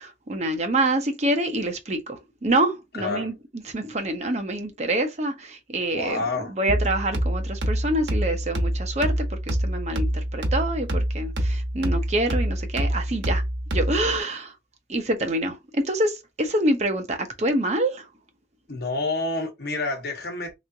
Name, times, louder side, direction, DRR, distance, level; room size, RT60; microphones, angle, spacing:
voice 1, 0.0-3.3 3.7-13.4 13.7-14.5 14.9-18.1, right 1 dB, 40° right, 0.8 m, -26 dB
voice 2, 2.9-3.3 5.9-6.5 18.7-20.5, left 2 dB, 60° left, 1.1 m, -28 dB
sound 1, 6.7-14.2, right 1 dB, 85° right, 1.1 m, -26 dB
3.4 x 3.1 x 2.7 m
head